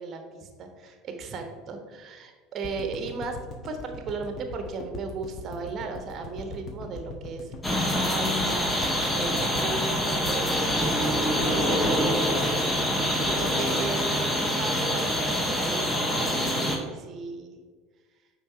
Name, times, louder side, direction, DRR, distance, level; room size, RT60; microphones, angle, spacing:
voice 1, 0.0-3.4 3.6-12.9 13.2-17.6, right 4 dB, 40° right, 5 dB, 1.1 m, -36 dB
sound 1, 2.6-14.8 15.1-15.2 15.4-15.5, left 2 dB, 40° left, 1.1 m, -40 dB
sound 2, 7.6-16.8, equal, 15° left, 1.3 m, -25 dB
9.0 x 3.8 x 4.7 m, 1.5 s
figure-of-eight pair, 70°, 0 cm